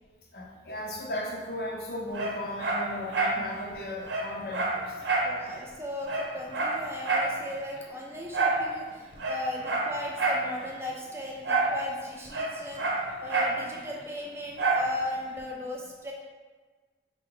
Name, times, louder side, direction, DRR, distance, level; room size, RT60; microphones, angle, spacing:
voice 1, 0.3-5.1, left 1 dB, 60° left, 0 dB, 0.7 m, -36 dB
Dog, 2.1-3.4 3.7-3.8 4.1-5.3 5.7-5.8 6.0-7.3 8.3-8.6 9.1-10.5 11.4-11.8 12.0-13.6 14.6-14.9 15.4-15.5, right 3 dB, 85° right, 0.7 m, -27 dB
voice 2, 5.2-16.1, left 1 dB, 15° right, -1 dB, 0.5 m, -37 dB
5.0 x 2.3 x 3.8 m, 1.4 s
head